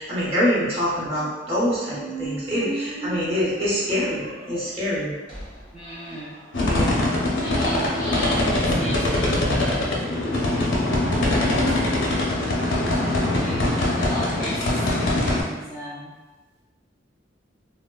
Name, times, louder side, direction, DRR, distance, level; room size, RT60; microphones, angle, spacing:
voice 1, 0.0-5.1 6.7-7.2, equal, 30° right, -8 dB, 0.9 m, -25 dB
Squeak, 1.0-6.9, right 1 dB, 75° right, 1.0 m, -37 dB
voice 2, 5.7-6.4 7.4-10.4 13.3-16.1, equal, 5° right, -11 dB, 0.4 m, -35 dB
sound 1, 6.5-15.4, left 1 dB, 80° left, 0.5 m, -22 dB
2.9 x 2.1 x 2.2 m, 1.2 s
head